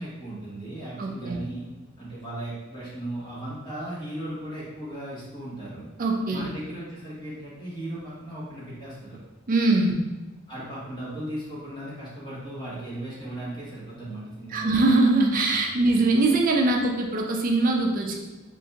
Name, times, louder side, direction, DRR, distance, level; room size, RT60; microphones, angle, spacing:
voice 1, 0.0-1.6 2.0-5.9 6.3-9.2 10.5-14.7, right 1 dB, 20° left, -8 dB, 1.2 m, -36 dB
voice 2, 1.0-1.4 6.0-6.5 9.5-10.0 14.5-18.2, right 2 dB, 45° right, 1 dB, 0.5 m, -22 dB
3.6 x 2.5 x 2.8 m, 1.1 s
head